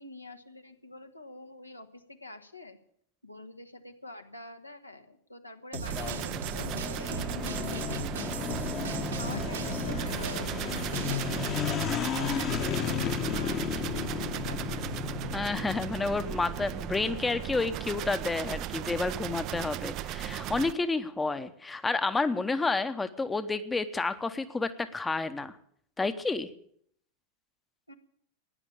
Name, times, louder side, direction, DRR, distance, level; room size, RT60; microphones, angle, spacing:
voice 1, 0.0-2.8 3.2-8.1 9.0-11.5 11.9-15.0 27.9-28.0, left 2 dB, 85° left, 5 dB, 1.6 m, -46 dB
sound 1, 5.7-17.1, left 8 dB, 35° left, 1.1 m, -34 dB
sound 2, 5.7-11.3, right 6 dB, 65° right, 1.7 m, -39 dB
sound 3, 5.8-20.7, right 13 dB, 40° right, 0.6 m, -36 dB
voice 2, 15.3-25.6 26.0-26.5, left 3 dB, 10° left, 11 dB, 0.9 m, -30 dB
15.0 x 10.0 x 8.6 m, 0.66 s
figure-of-eight pair, 90°, 0 cm